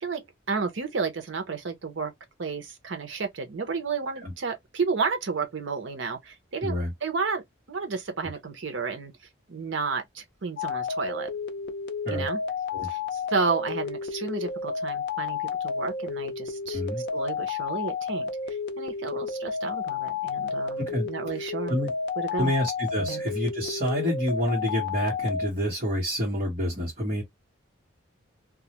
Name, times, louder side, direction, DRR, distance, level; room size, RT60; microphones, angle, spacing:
voice 1, 0.0-2.1 2.4-7.4 7.7-9.1 9.5-11.3 12.1-12.4 12.9-15.4 15.6-16.8 17.1-21.8 22.2-22.5 23.0-23.2, right 4 dB, 65° right, 0.7 m, -32 dB
sound 1, 10.6-25.5, left 5 dB, 55° left, 0.4 m, -31 dB
voice 2, 16.7-17.0 20.8-21.1 21.7-21.9 22.4-27.2, equal, 35° right, 1.0 m, -28 dB
2.3 x 2.0 x 2.9 m
head